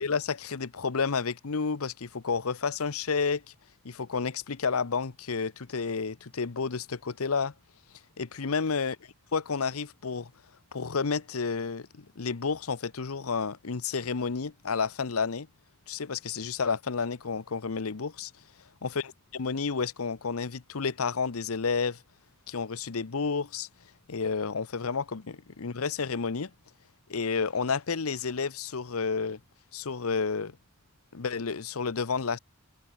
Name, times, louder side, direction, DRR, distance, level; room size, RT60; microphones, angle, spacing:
voice 1, 0.0-3.4 3.8-7.5 8.2-9.0 9.3-10.3 10.7-15.5 15.9-18.3 18.8-19.0 19.3-22.0 22.5-23.7 24.1-26.5 27.1-29.4 29.7-30.6 31.1-32.4, left 5 dB, 75° left, 0.8 m, -30 dB
head